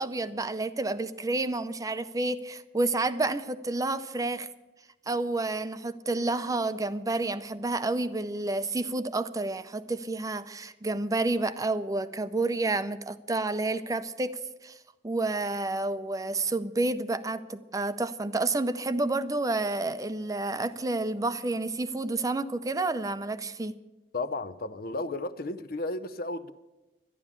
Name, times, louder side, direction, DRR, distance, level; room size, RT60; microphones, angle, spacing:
voice 1, 0.0-4.5 5.1-14.8 15.0-23.8, right 2 dB, 20° right, 12 dB, 0.5 m, -30 dB
voice 2, 24.1-26.5, left 2 dB, 55° left, 12 dB, 0.7 m, -33 dB
12.0 x 11.0 x 8.7 m, 1.1 s
head